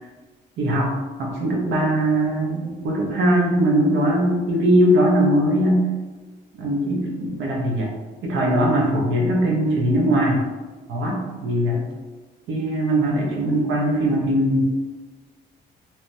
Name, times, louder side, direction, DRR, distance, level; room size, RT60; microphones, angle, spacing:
voice 1, 0.6-5.9 6.5-7.9 8.2-10.5 10.9-11.8 12.5-14.8, right 1 dB, 75° right, -1 dB, 0.6 m, -20 dB
2.9 x 2.0 x 2.6 m, 1.3 s
cardioid pair, 90°, 20 cm